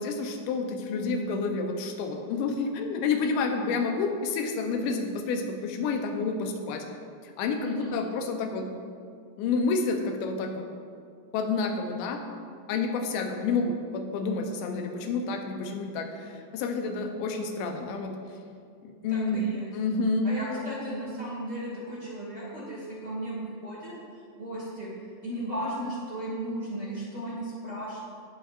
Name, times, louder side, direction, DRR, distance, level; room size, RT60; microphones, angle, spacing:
voice 1, 0.0-6.8 7.2-8.7 9.4-10.7 11.3-12.2 12.7-18.2 18.8-19.5 19.7-20.3, left 4 dB, 90° left, 4 dB, 3.1 m, -29 dB
voice 2, 7.6-8.0 19.1-19.7 20.2-23.9 24.4-24.9 25.2-28.0, right 1 dB, 30° right, -8 dB, 2.2 m, -35 dB
17.0 x 8.0 x 2.6 m, 2.2 s
omnidirectional pair, 4.9 m